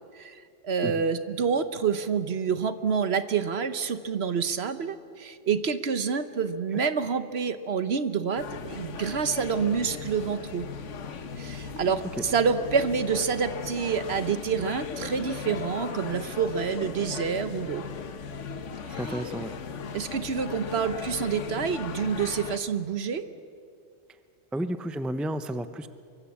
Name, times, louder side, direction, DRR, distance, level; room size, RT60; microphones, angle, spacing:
voice 1, 0.1-10.7 11.4-17.8 18.9-19.0 19.9-23.2, right 6 dB, 60° right, 11 dB, 1.2 m, -28 dB
sound 1, 8.4-22.6, left 6 dB, 85° left, 1.4 m, -37 dB
voice 2, 19.0-19.5 24.5-25.9, right 1 dB, ahead, 11 dB, 0.5 m, -31 dB
23.5 x 23.5 x 7.2 m, 2.3 s
omnidirectional pair, 1.2 m